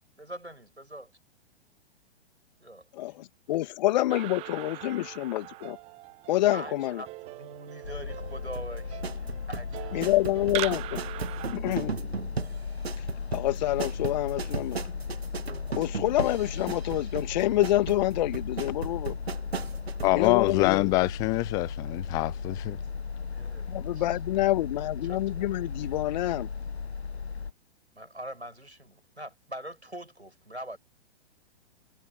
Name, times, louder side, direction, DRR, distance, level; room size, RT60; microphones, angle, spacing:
voice 1, 0.2-1.1 2.6-2.9 6.5-10.0 19.7-20.3 23.3-24.5 25.0-25.7 28.0-30.8, right 1 dB, 90° right, 7.1 m, -43 dB
voice 2, 2.9-5.8 6.3-7.0 9.9-11.0 11.5-11.9 13.3-14.8 15.7-19.2 20.1-20.9 23.7-26.5, left 15 dB, 40° left, 2.4 m, -27 dB
sound 1, 4.1-11.6, right 20 dB, 20° right, 0.7 m, -41 dB
sound 2, 7.8-27.5, left 5 dB, 75° left, 1.5 m, -36 dB
sound 3, 8.5-20.2 20.5-20.6, right 6 dB, 70° right, 2.0 m, -36 dB
voice 3, 20.0-22.8, left 24 dB, 10° left, 0.4 m, -25 dB
figure-of-eight pair, 110°, 32 cm